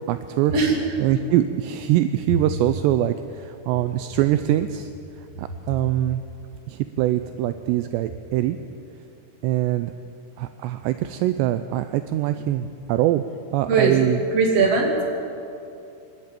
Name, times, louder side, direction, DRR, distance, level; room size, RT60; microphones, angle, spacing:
voice 1, 0.1-0.5 1.0-4.9 5.4-6.2 6.7-8.6 9.4-9.9 10.4-13.2 13.5-14.2, right 13 dB, 85° right, 10 dB, 2.5 m, -23 dB
voice 2, 13.7-14.0 14.3-15.0, right 4 dB, 40° right, 0 dB, 3.2 m, -19 dB
24.5 x 12.0 x 8.9 m, 2.7 s
omnidirectional pair, 5.4 m